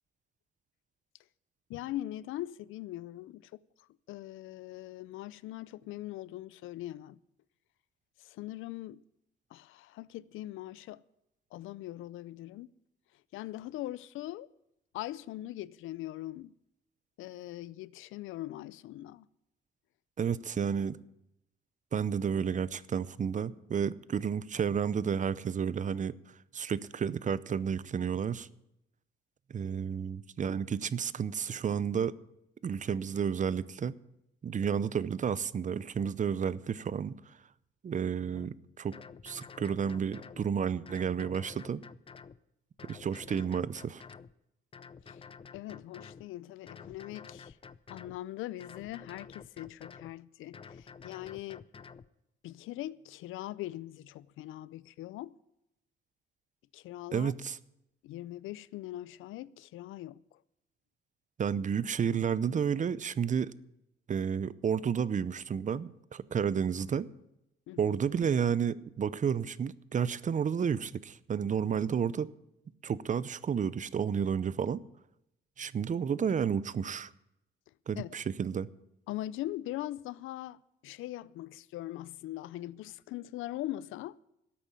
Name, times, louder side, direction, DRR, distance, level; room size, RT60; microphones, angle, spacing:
voice 1, 1.7-7.2 8.2-9.0 9.5-11.0 11.5-12.7 13.3-14.5 14.9-16.5 17.2-19.3 45.1-45.2 45.5-47.6 47.9-51.6 52.4-55.4 56.7-57.3 58.0-60.2 67.7-68.0 78.0-78.1 79.1-84.2, left 15 dB, 85° left, 0.5 m, -41 dB
voice 2, 20.2-21.0 21.9-26.2 26.5-28.5 29.5-32.1 32.6-33.9 34.4-37.2 37.8-39.0 39.2-41.8 42.8-44.0 57.1-57.6 61.4-63.5 64.1-67.1 67.8-72.3 72.8-74.8 75.6-77.1 77.9-78.7, right 7 dB, 40° right, 0.6 m, -31 dB
sound 1, 38.4-38.5 38.9-40.4 40.8-42.4 42.8-44.3 44.7-46.2 46.7-48.2 48.6-50.1 50.5-52.1, left 5 dB, 25° left, 0.6 m, -50 dB
13.0 x 8.6 x 9.9 m
cardioid pair, 90°, 20 cm